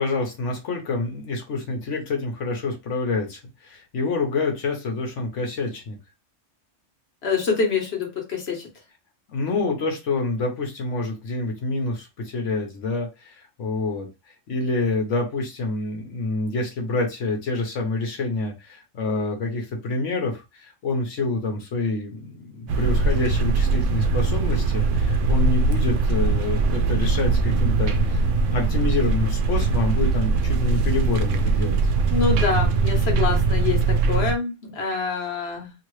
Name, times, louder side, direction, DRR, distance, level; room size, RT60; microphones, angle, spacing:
voice 1, 0.0-6.0 9.3-14.1 14.5-28.2 28.5-31.8, left 3 dB, 75° left, 2 dB, 1.2 m, -27 dB
voice 2, 7.2-8.7 32.1-35.7, left 5 dB, 60° left, 2 dB, 1.3 m, -26 dB
sound 1, 22.7-34.4, right 3 dB, 80° right, 0.9 m, -21 dB
2.9 x 2.9 x 3.1 m, 0.26 s
omnidirectional pair, 1.3 m